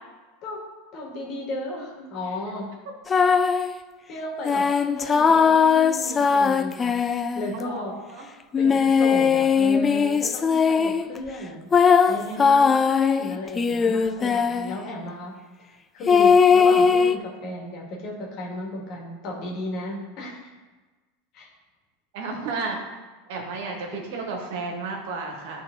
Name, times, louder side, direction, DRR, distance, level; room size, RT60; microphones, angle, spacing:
voice 1, 0.9-2.7 4.1-7.0 7.3-8.0 8.6-11.7 12.1-15.3 15.9-20.4 21.3-21.5 23.9-24.2, left 1 dB, 50° left, -1 dB, 2.0 m, -34 dB
sound 1, 3.1-3.7 4.4-7.7 8.5-11.1 11.7-14.8 16.1-17.2, left 6 dB, 25° left, 0.3 m, -19 dB
voice 2, 7.5-8.2 22.1-22.8 23.3-25.6, right 4 dB, 70° right, 1 dB, 1.6 m, -32 dB
10.0 x 3.9 x 3.9 m, 1.3 s
hypercardioid pair, 105°, 0 cm